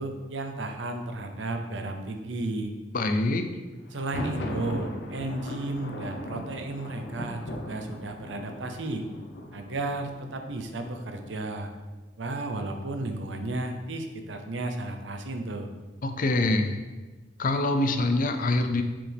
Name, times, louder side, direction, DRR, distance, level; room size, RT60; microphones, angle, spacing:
voice 1, 0.0-2.7 3.9-9.1 9.5-11.7 12.2-15.7, right 2 dB, 90° right, 5 dB, 0.7 m, -33 dB
voice 2, 2.9-3.5 16.0-16.8 17.4-18.8, left 2 dB, 50° left, 7 dB, 0.5 m, -25 dB
Thunder, 3.9-11.6, left 1 dB, 80° left, 0.9 m, -38 dB
7.3 x 4.8 x 3.5 m, 1.3 s
head